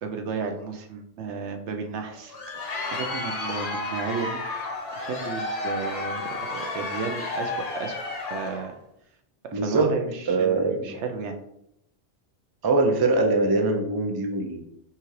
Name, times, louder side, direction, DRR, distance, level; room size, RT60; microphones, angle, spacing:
voice 1, 0.0-4.4 4.9-8.0 8.3-8.7 9.5-11.4, right 5 dB, 85° right, 5 dB, 0.9 m, -33 dB
Crowd, 2.1-8.7, left 2 dB, 40° left, 0.6 m, -32 dB
voice 2, 9.5-10.0 10.3-11.0 12.6-14.7, right 3 dB, 35° right, 3 dB, 0.4 m, -23 dB
5.6 x 2.5 x 3.1 m, 0.79 s
omnidirectional pair, 1.2 m